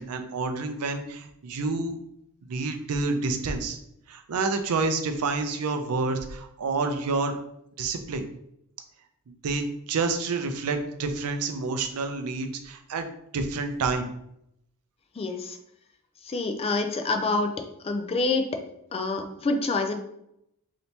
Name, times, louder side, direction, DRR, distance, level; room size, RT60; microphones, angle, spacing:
voice 1, 0.0-2.0 2.5-3.8 4.1-7.4 7.8-8.3 9.4-13.1 13.3-14.1, right 3 dB, 80° right, 7 dB, 0.4 m, -28 dB
voice 2, 15.2-15.6 16.2-17.5 17.8-18.6 18.9-19.9, left 3 dB, 25° left, 6 dB, 0.3 m, -27 dB
3.2 x 2.8 x 2.7 m, 0.78 s
head